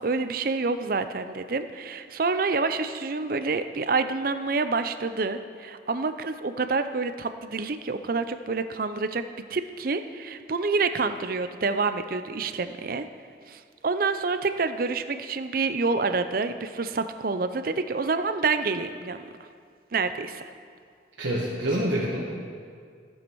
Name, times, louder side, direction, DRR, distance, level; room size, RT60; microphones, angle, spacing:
voice 1, 0.0-9.2 9.5-13.1 13.5-19.3 19.9-20.4, right 4 dB, 50° right, 10 dB, 0.5 m, -27 dB
voice 2, 21.2-22.2, right 1 dB, 85° right, -6 dB, 1.6 m, -26 dB
14.5 x 7.9 x 4.7 m, 2.1 s
head